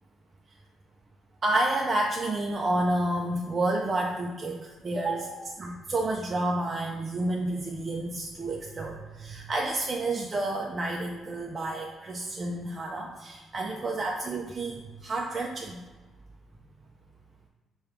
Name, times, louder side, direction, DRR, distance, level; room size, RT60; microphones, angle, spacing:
voice 1, 1.4-15.8, right 2 dB, 35° right, 0 dB, 0.4 m, -30 dB
4.6 x 2.3 x 3.4 m, 1.2 s
cardioid pair, 90°, 0 cm